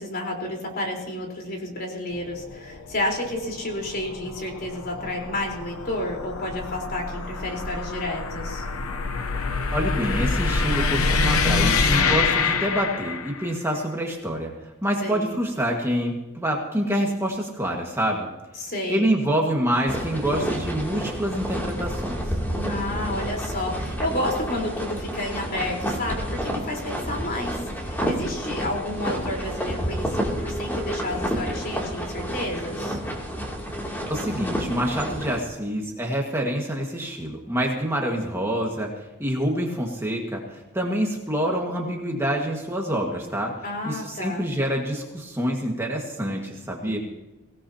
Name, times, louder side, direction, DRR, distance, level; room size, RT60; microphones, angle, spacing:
voice 1, 0.0-8.6 15.0-15.4 18.6-19.1 22.5-33.0 43.6-44.4 46.8-47.0, left 1 dB, 45° left, 0 dB, 4.2 m, -31 dB
sound 1, 2.1-13.5, left 4 dB, 80° left, 0.9 m, -26 dB
voice 2, 9.7-18.3 18.9-22.3 34.1-43.5 43.8-47.0, equal, 10° right, -1 dB, 1.7 m, -26 dB
sound 2, 19.9-35.4, equal, 10° left, 2.8 m, -29 dB
24.0 x 17.5 x 2.9 m, 1.1 s
head